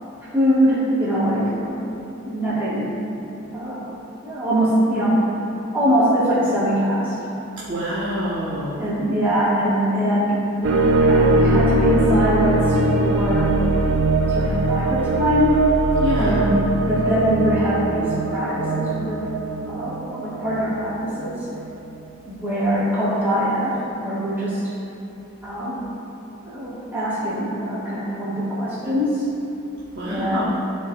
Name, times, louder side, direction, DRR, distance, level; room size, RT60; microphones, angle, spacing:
voice 1, 0.3-1.8 2.1-2.9 3.5-3.9 4.2-5.2 5.7-7.2 8.8-13.6 14.3-15.7 16.2-16.5 16.9-19.3 19.7-21.5 22.3-24.6 25.4-25.8 26.4-29.2 30.1-30.4, equal, 10° right, -11 dB, 1.5 m, -22 dB
voice 2, 7.7-8.8 16.0-16.4 29.9-30.4, equal, 60° right, -10 dB, 1.0 m, -26 dB
sound 1, 10.6-21.6, right 2 dB, 80° right, 0.5 m, -21 dB
12.5 x 4.6 x 2.3 m, 2.9 s
head